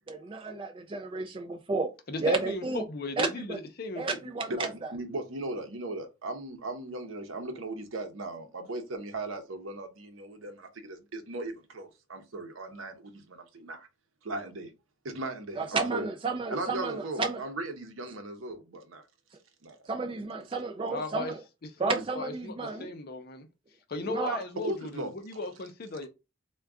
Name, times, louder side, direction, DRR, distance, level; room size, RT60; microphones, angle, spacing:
voice 1, 0.1-0.7 1.1-1.4 1.7-1.9 2.2-2.8 3.2-3.6 4.0-4.7 15.6-17.4 19.9-21.4 21.8-22.9 24.1-24.4, right 4 dB, 25° right, 0.3 m, -31 dB
voice 2, 2.1-4.1 20.9-21.3 21.6-23.5 23.9-26.1, left 2 dB, 50° left, 0.5 m, -36 dB
voice 3, 4.5-13.9 14.2-14.7 15.0-16.1 16.5-19.0 19.6-19.8 24.6-25.1, right 2 dB, 75° right, 0.7 m, -37 dB
3.6 x 2.2 x 3.4 m
head